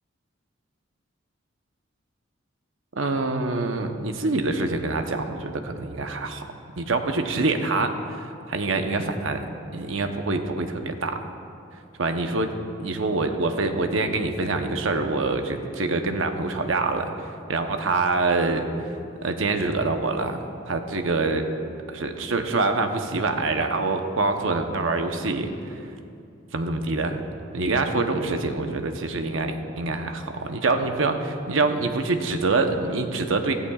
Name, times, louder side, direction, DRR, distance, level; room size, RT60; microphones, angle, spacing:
voice 1, 2.9-6.5 6.8-11.3 12.0-12.5 12.8-18.9 19.2-21.5 21.9-25.8 26.5-27.2 27.5-33.5, right 3 dB, 80° right, 6 dB, 0.9 m, -25 dB
16.0 x 14.5 x 2.4 m, 2.5 s
head